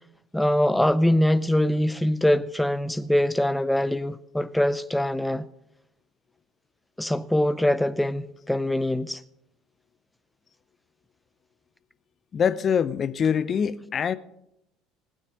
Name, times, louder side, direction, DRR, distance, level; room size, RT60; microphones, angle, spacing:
voice 1, 0.3-5.5 7.0-9.2, left 1 dB, 5° left, 0.5 m, -23 dB
voice 2, 12.3-14.2, left 7 dB, 40° left, 0.7 m, -24 dB
19.0 x 6.5 x 6.7 m
hypercardioid pair, 65°, 0 cm